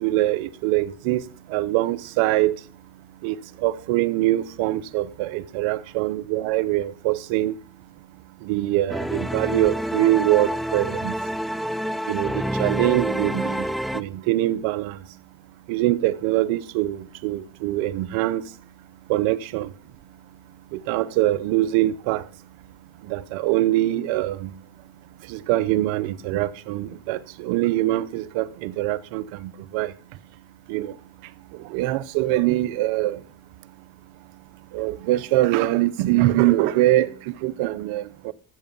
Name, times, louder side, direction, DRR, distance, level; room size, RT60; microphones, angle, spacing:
voice 1, 0.0-2.6 3.2-7.5 8.4-11.2 12.1-13.6 13.9-15.0 15.7-18.4 19.1-19.7 20.7-22.2 23.1-24.5 25.3-29.9 30.7-30.9 31.7-33.2 34.7-38.3, right 15 dB, 90° right, 0.8 m, -23 dB
sound 1, 8.9-14.0, equal, ahead, 0.5 m, -27 dB
13.5 x 7.9 x 5.3 m
supercardioid pair, 70°, 46 cm